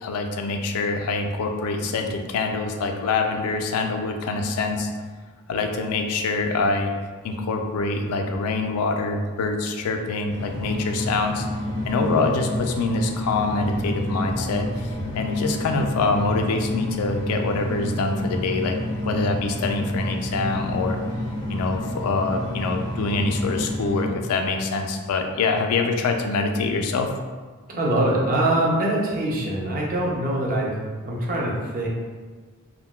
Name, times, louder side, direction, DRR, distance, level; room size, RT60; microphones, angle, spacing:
voice 1, 0.0-4.9 5.5-6.9 7.2-11.5 11.8-18.8 19.0-21.0 21.5-27.1, left 3 dB, 90° left, 4 dB, 0.3 m, -25 dB
sound 1, 10.3-24.1, left 1 dB, 20° left, 0.5 m, -30 dB
voice 2, 27.7-30.7 31.0-31.9, right 1 dB, 40° right, -3 dB, 0.5 m, -23 dB
3.6 x 2.2 x 2.2 m, 1.4 s
head